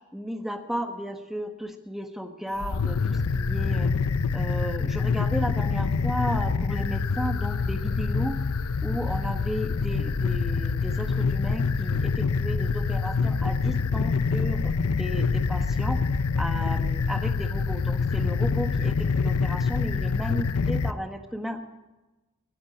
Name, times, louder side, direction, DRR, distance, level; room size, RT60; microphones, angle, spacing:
voice 1, 0.1-3.9 4.3-8.3 8.8-16.0 16.4-21.6, equal, ahead, 6 dB, 1.2 m, -34 dB
sound 1, 2.6-20.9, left 4 dB, 75° left, 0.6 m, -26 dB
15.5 x 10.0 x 8.7 m, 1.1 s
head